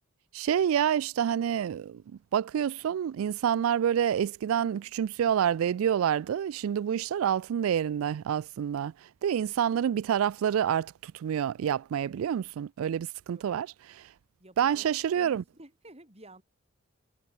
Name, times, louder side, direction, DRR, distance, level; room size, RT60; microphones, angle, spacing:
voice 1, 0.3-8.9 9.2-14.1 14.6-15.4, right 9 dB, 85° right, 0.3 m, -28 dB
voice 2, 14.4-14.9 15.1-16.4, right 1 dB, 30° right, 4.7 m, -51 dB
head